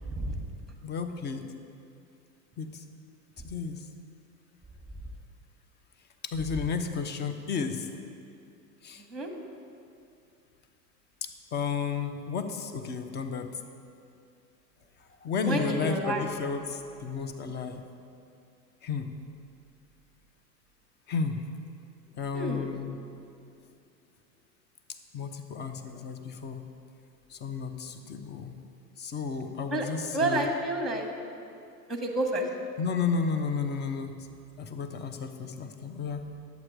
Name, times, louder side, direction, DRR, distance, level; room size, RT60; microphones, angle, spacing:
voice 1, 0.1-0.4 9.1-9.3 15.4-16.2 22.3-22.7 29.7-29.9 30.1-31.1 31.9-32.5, right 1 dB, ahead, 3 dB, 1.2 m, -29 dB
voice 2, 0.8-1.5 2.6-2.8 3.4-3.9 6.2-7.9 8.8-9.0 11.2-13.5 15.2-17.8 18.8-19.1 21.1-21.5 22.1-23.0 25.1-26.6 27.3-28.5 29.0-30.5 32.8-34.1 34.6-36.3, left 5 dB, 20° left, 7 dB, 0.6 m, -32 dB
11.0 x 8.1 x 4.7 m, 2.5 s
hypercardioid pair, 90°, 50 cm